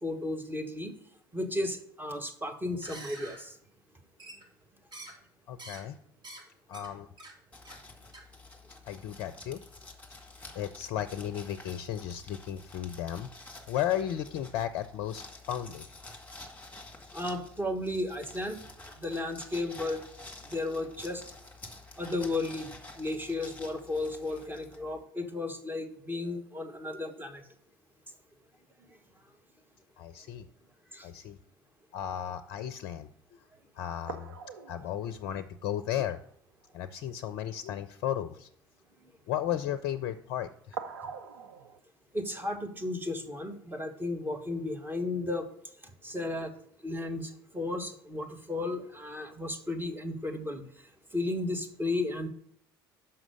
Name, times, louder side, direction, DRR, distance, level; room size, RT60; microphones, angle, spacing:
voice 1, 0.0-1.0 1.3-3.5 17.1-18.6 19.0-20.0 20.4-21.2 22.0-22.7 23.0-27.4 28.8-28.9 30.9-31.1 42.1-45.5 46.0-46.5 46.8-50.6 51.1-52.3, left 2 dB, 15° right, 4 dB, 1.5 m, -34 dB
sound 1, 2.7-3.4 4.2-4.6 4.9-5.2 5.6-5.8 6.2-6.4 6.7-6.9 7.2-7.3 7.6-7.9 8.1-8.2, right 2 dB, 35° right, 2.4 m, -46 dB
voice 2, 5.5-6.0 6.7-7.1 8.9-9.6 10.5-13.3 13.7-15.8 30.0-30.4 31.0-31.4 31.9-33.1 33.8-34.3 34.7-36.2 36.7-38.5 39.3-40.8 46.9-47.0, left 11 dB, 60° left, 11 dB, 0.4 m, -34 dB
sound 2, 7.5-25.0, left 2 dB, 15° left, 2.0 m, -49 dB
sound 3, 33.0-33.1 33.6-33.7 34.1-36.4 36.6-36.7 37.1-37.3 40.7-41.8, right 5 dB, 80° right, 0.5 m, -43 dB
6.0 x 5.7 x 6.6 m, 0.68 s
figure-of-eight pair, 60°, 12 cm